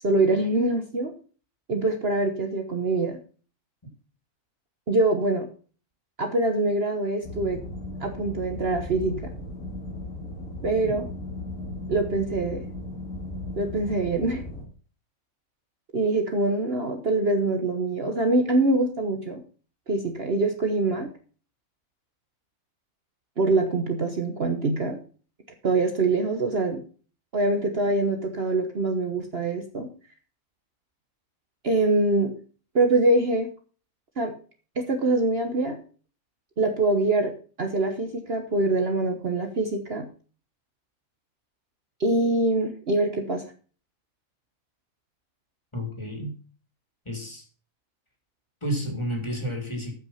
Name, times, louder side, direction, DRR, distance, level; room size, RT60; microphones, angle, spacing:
voice 1, 0.0-1.1 1.7-3.2 4.9-5.5 6.2-7.6 8.0-9.3 10.6-11.1 11.9-12.6 13.6-14.4 15.9-19.4 19.9-21.1 23.4-25.0 25.6-26.8 27.3-29.9 31.6-32.3 32.7-33.5 34.2-34.3 34.8-35.8 36.6-37.3 37.6-40.1 42.0-43.4, right 2 dB, 45° right, 5 dB, 1.3 m, -24 dB
sound 1, 7.2-14.6, left 1 dB, 90° left, 3.1 m, -36 dB
voice 2, 45.7-46.3 47.0-47.4 48.6-49.9, equal, 20° left, 2 dB, 3.1 m, -31 dB
13.5 x 6.1 x 5.6 m, 0.40 s
omnidirectional pair, 1.5 m